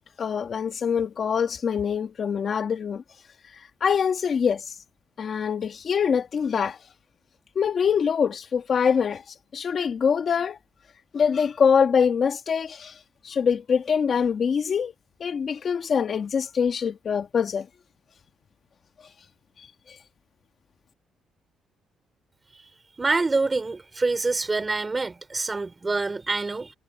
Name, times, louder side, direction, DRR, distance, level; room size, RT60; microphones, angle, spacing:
voice 1, 0.2-3.0 3.8-4.7 5.2-6.8 7.5-9.2 9.5-10.6 11.1-13.0 13.2-14.9 15.2-17.7, left 6 dB, 50° left, 1.7 m, -24 dB
voice 2, 23.0-26.7, right 3 dB, 25° right, 3.7 m, -26 dB
cardioid pair, 90°, 0 cm